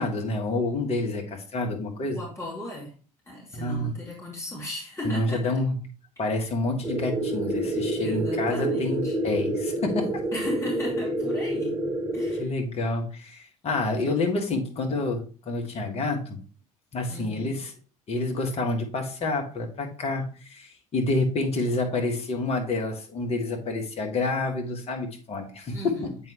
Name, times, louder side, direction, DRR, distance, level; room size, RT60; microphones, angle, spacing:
voice 1, 0.0-2.2 3.5-3.9 5.0-5.8 6.2-10.2 12.4-16.4 16.9-17.7 18.1-26.0, left 2 dB, 35° left, 2 dB, 1.5 m, -28 dB
voice 2, 2.1-2.9 3.3-5.6 8.0-9.2 10.3-11.8 12.1-12.5 17.1-17.6 25.7-26.2, left 1 dB, 15° left, -3 dB, 2.6 m, -36 dB
sound 1, 6.8-12.5, right 1 dB, 15° right, 0.7 m, -28 dB
7.6 x 4.6 x 3.0 m, 0.37 s
figure-of-eight pair, 65°, 19 cm